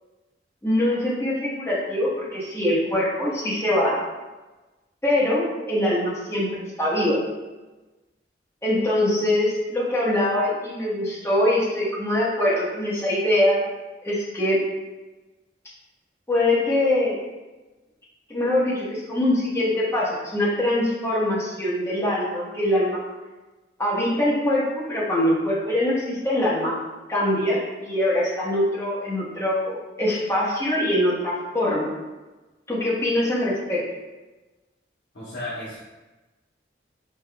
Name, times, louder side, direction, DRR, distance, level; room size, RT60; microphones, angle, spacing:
voice 1, 0.6-4.0 5.0-7.2 8.6-13.6 14.0-14.6 16.3-17.2 18.3-23.0 23.8-26.8 27.1-31.9 32.7-33.8, left 1 dB, 15° left, -8 dB, 0.9 m, -23 dB
voice 2, 35.1-35.8, left 1 dB, 75° left, -10 dB, 0.9 m, -33 dB
5.5 x 2.3 x 2.2 m, 1.2 s
head